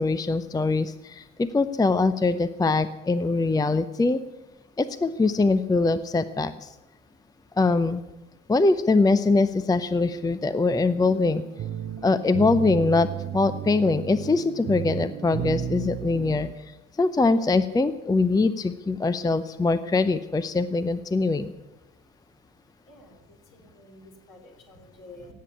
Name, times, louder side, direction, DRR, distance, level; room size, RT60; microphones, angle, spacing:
voice 1, 0.0-4.2 4.8-6.7 7.6-8.0 8.5-11.4 12.0-13.1 13.3-16.5 17.0-21.5, left 3 dB, 10° left, 14 dB, 0.6 m, -23 dB
sound 1, 11.1-16.5, right 11 dB, 40° right, 0.8 m, -34 dB
voice 2, 22.9-25.3, left 2 dB, 60° left, 1 dB, 4.0 m, -49 dB
17.5 x 8.4 x 9.8 m, 1.0 s
figure-of-eight pair, 45°, 36 cm